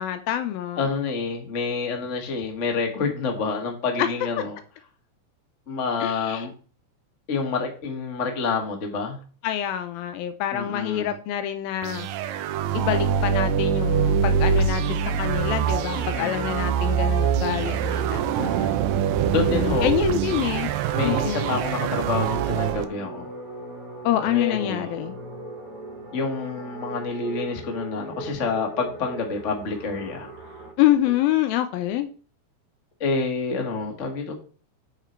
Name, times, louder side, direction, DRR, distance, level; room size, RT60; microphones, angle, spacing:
voice 1, 0.0-0.9 4.0-4.1 6.0-6.5 9.4-12.1 12.7-18.3 19.3-20.7 21.0-21.6 24.0-25.2 30.8-32.1, left 12 dB, 80° left, 2.4 m, -26 dB
voice 2, 0.8-4.6 5.7-6.5 7.3-9.2 10.5-11.1 15.9-16.5 18.4-18.8 19.3-19.9 20.9-23.3 24.2-24.9 26.1-30.3 33.0-34.3, left 4 dB, 50° left, 0.8 m, -28 dB
sound 1, 11.8-22.9, right 7 dB, 80° right, 2.2 m, -24 dB
sound 2, 18.0-30.7, right 3 dB, 25° right, 3.3 m, -39 dB
8.2 x 6.0 x 4.4 m
omnidirectional pair, 4.4 m